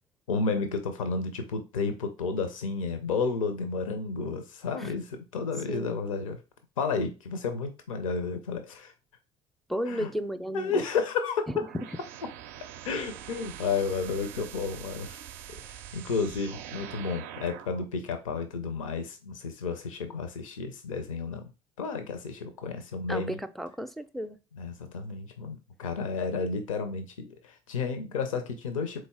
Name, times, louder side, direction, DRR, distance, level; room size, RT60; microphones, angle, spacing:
voice 1, 0.3-6.4 6.8-8.9 9.9-10.1 10.5-11.4 12.8-15.2 15.6-21.5 21.8-23.4 24.5-29.1, left 4 dB, 80° left, 0.6 m, -32 dB
voice 2, 9.7-10.8 23.1-24.4, equal, ahead, 0.4 m, -34 dB
sound 1, 11.4-17.9, right 10 dB, 60° right, 0.4 m, -44 dB
3.9 x 3.2 x 3.5 m
figure-of-eight pair, 60°, 17 cm